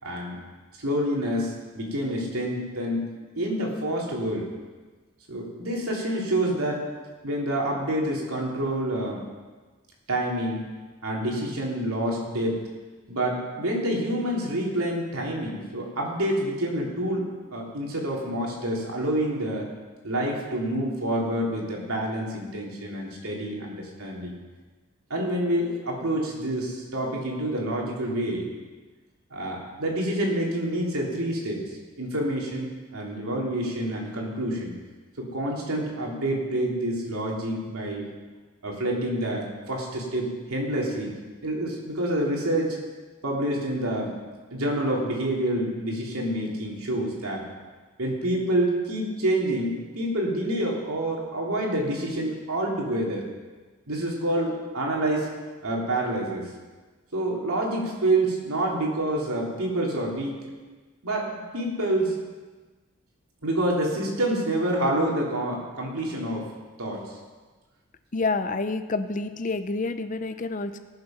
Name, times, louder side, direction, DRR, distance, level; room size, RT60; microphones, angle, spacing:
voice 1, 0.0-0.4 0.8-3.1 3.3-4.5 5.3-6.8 7.2-9.3 10.1-10.6 11.0-12.6 13.1-17.2 17.5-19.7 20.0-24.4 25.1-28.5 29.3-34.7 35.2-38.1 38.6-41.1 41.4-42.8 43.2-44.1 44.5-47.5 48.0-53.2 53.9-55.3 55.6-56.5 57.1-60.4 61.0-62.2 63.4-66.5 66.8-67.0, right 1 dB, 85° right, -2 dB, 3.0 m, -27 dB
voice 2, 68.1-70.8, left 3 dB, 35° left, 11 dB, 0.5 m, -28 dB
18.0 x 6.8 x 5.9 m, 1.3 s
head